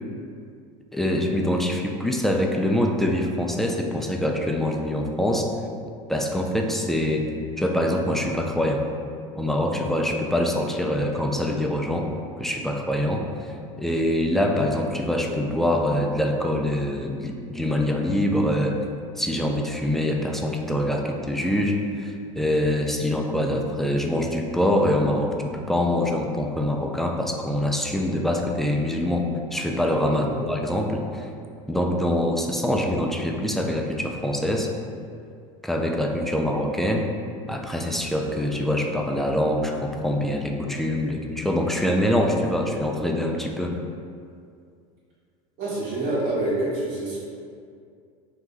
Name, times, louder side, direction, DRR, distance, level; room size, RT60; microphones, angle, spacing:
voice 1, 0.9-5.5 6.1-7.2 7.6-8.8 9.4-12.1 12.4-13.3 13.8-18.8 19.2-31.3 31.7-34.7 35.6-37.1 37.5-43.7, left 1 dB, ahead, 1 dB, 0.3 m, -24 dB
voice 2, 30.1-30.5 45.6-47.2, right 2 dB, 60° right, -8 dB, 1.1 m, -27 dB
2.8 x 2.3 x 3.9 m, 2.3 s
hypercardioid pair, 90°, 17 cm